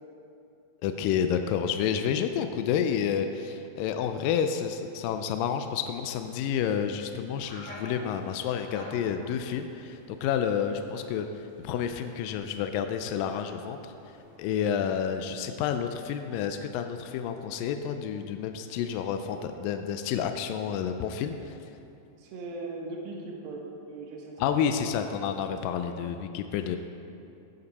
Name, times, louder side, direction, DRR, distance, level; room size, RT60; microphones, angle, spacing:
voice 1, 0.8-11.3 11.6-13.9 14.4-21.6 24.4-26.8, left 8 dB, 80° left, 7 dB, 2.2 m, -29 dB
sound 1, 6.2-14.4, equal, 20° left, 1.4 m, -50 dB
voice 2, 22.2-24.8 25.1-25.2 25.4-25.5 25.9-26.0, right 3 dB, 90° right, 0 dB, 2.9 m, -40 dB
16.0 x 7.0 x 4.1 m, 2.7 s
omnidirectional pair, 4.1 m